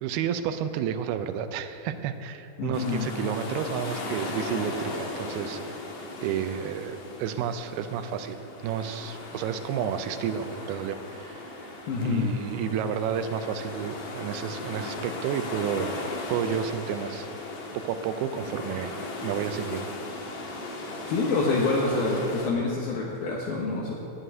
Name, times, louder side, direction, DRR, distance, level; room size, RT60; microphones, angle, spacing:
voice 1, 0.0-5.8 6.2-11.7 12.0-16.0 16.3-17.3 17.7-19.0 19.2-20.0, right 8 dB, 90° right, 9 dB, 2.6 m, -31 dB
voice 2, 2.6-3.1 11.9-12.3 21.0-24.0, left 3 dB, 75° left, -4 dB, 3.0 m, -26 dB
sound 1, 2.7-22.5, left 2 dB, 55° left, 2.4 m, -37 dB
9.4 x 8.9 x 9.8 m, 2.8 s
omnidirectional pair, 4.4 m